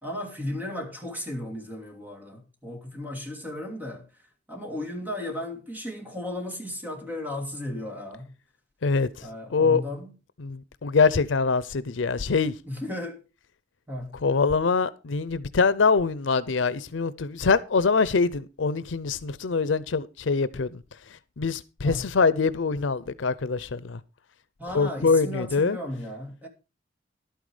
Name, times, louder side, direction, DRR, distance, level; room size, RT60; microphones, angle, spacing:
voice 1, 0.0-4.1 4.5-8.3 9.2-10.1 12.6-13.2 13.9-14.2 21.8-22.1 24.6-26.5, left 1 dB, 10° right, 2.6 m, -35 dB
voice 2, 8.8-9.3 9.5-9.8 10.4-12.5 14.2-20.8 21.4-24.0 24.7-25.8, left 4 dB, 90° left, 0.6 m, -24 dB
11.5 x 9.2 x 4.9 m
head